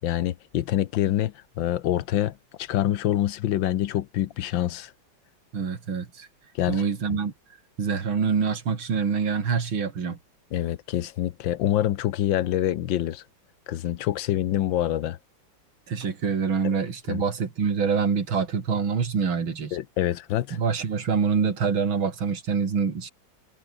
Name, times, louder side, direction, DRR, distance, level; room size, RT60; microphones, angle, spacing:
voice 1, 0.0-4.9 6.5-6.8 10.5-13.2 13.7-15.2 17.1-17.2 19.7-20.6, left 12 dB, 75° left, 1.6 m, -26 dB
voice 2, 5.5-6.3 6.7-7.3 7.8-10.2 15.9-19.8 20.5-23.1, right 6 dB, 90° right, 3.4 m, -25 dB
omnidirectional pair, 2.1 m